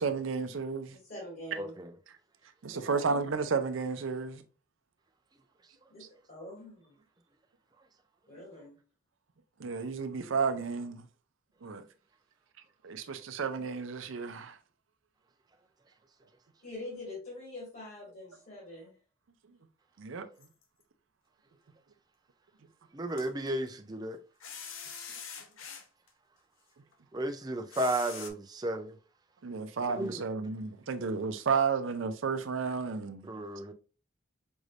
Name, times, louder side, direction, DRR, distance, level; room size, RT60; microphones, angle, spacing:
voice 1, 0.0-1.0 2.6-4.4 9.6-11.0 11.6-11.8 12.8-14.6 20.0-20.3 29.4-33.3, right 5 dB, 75° right, 0.5 m, -32 dB
voice 2, 0.9-1.8 2.7-3.1 5.9-7.0 8.3-8.8 16.6-19.0, left 1 dB, 45° left, 2.1 m, -45 dB
voice 3, 1.6-1.9 22.9-24.2 27.1-29.0 29.9-30.2 33.3-33.7, right 1 dB, 20° right, 0.4 m, -33 dB
sound 1, 20.4-20.8 23.2-23.7 24.4-26.1 26.9-27.0 27.7-28.3, left 6 dB, 85° left, 0.7 m, -44 dB
5.3 x 3.3 x 2.4 m
head